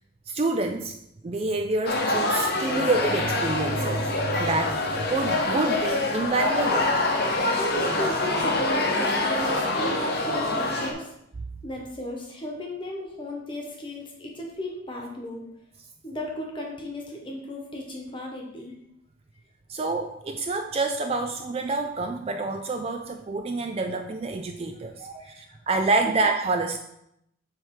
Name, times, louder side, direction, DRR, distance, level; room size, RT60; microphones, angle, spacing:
voice 1, 0.3-1.0 1.2-6.9 19.7-26.8, right 3 dB, 30° right, 5 dB, 0.3 m, -27 dB
sound 1, 1.9-10.9, left 2 dB, 50° left, 0.9 m, -25 dB
voice 2, 7.5-11.1 11.6-15.4 16.0-18.7 25.2-25.4 26.0-26.1, equal, 25° left, 0 dB, 1.2 m, -35 dB
7.5 x 3.3 x 4.7 m, 0.79 s
head